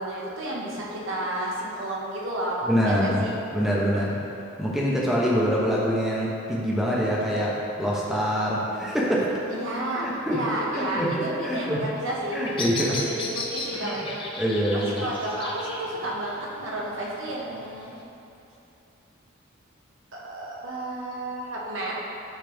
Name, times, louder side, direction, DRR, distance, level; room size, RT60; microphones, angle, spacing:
voice 1, 0.0-3.3 9.5-10.0 10.3-12.4 12.9-14.2 14.7-17.9 20.2-21.9, right 1 dB, 65° right, -5 dB, 1.4 m, -31 dB
voice 2, 2.7-3.2 3.5-4.2 4.6-7.5 7.8-9.3 10.0-10.4 10.7-11.8 12.3-13.0 13.7-14.0 14.4-15.0, equal, ahead, -6 dB, 1.1 m, -25 dB
Bird vocalization bird call bird song, 12.0-18.0, left 2 dB, 25° left, 0.7 m, -36 dB
12.0 x 4.2 x 3.6 m, 2.8 s
head